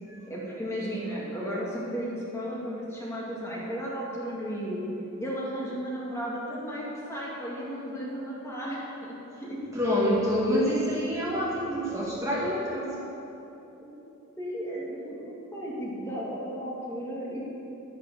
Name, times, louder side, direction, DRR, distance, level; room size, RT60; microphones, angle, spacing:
voice 1, 0.3-4.9 5.2-9.6 13.8-13.9 14.4-17.5, equal, 15° left, -6 dB, 2.2 m, -34 dB
voice 2, 9.7-13.0, equal, 15° right, -6 dB, 2.2 m, -26 dB
11.0 x 11.0 x 6.9 m, 3.0 s
head